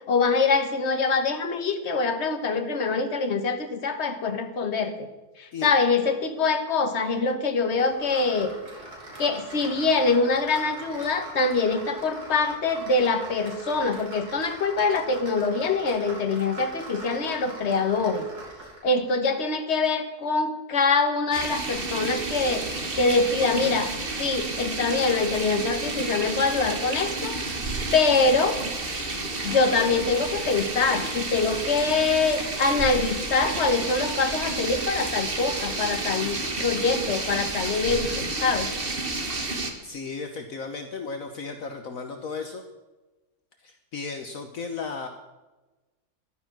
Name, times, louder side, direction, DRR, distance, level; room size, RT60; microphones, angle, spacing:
voice 1, 0.1-5.1 5.4-8.5 9.2-18.3 18.8-22.6 23.0-23.9 24.2-27.3 27.9-28.6 29.4-38.7, left 4 dB, 45° left, 6 dB, 1.6 m, -24 dB
sound 1, 7.8-18.9, right 1 dB, 85° right, 4.0 m, -42 dB
sound 2, 21.3-39.7, right 3 dB, 35° right, 1.8 m, -31 dB
voice 2, 39.8-42.6 43.6-45.1, left 4 dB, 60° left, 5 dB, 1.5 m, -35 dB
14.0 x 12.0 x 6.1 m, 1.1 s
omnidirectional pair, 1.7 m